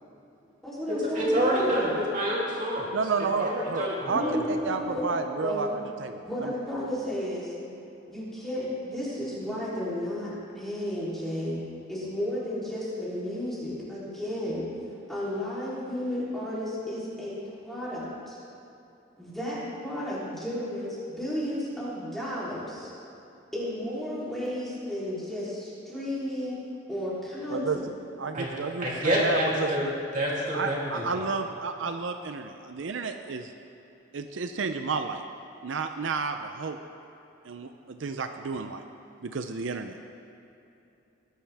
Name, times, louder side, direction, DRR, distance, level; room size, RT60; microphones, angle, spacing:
voice 1, 0.6-1.9 4.1-5.0 5.4-5.7 6.2-7.5 8.1-11.6 11.9-14.6 15.1-18.4 19.2-22.9 23.5-26.6 26.9-27.8, left 1 dB, ahead, -9 dB, 3.4 m, -33 dB
voice 2, 1.1-2.9 3.4-4.7 28.3-28.5 28.8-29.9 30.1-31.2, equal, 40° right, -5 dB, 3.0 m, -27 dB
voice 3, 2.9-4.2 4.5-5.7 6.0-6.5 27.5-27.8 28.2-29.9 30.5-33.5 34.1-35.2 35.6-36.8 37.4-38.8 39.2-40.0, right 4 dB, 80° right, 7 dB, 0.6 m, -31 dB
20.0 x 10.0 x 3.5 m, 2.8 s
head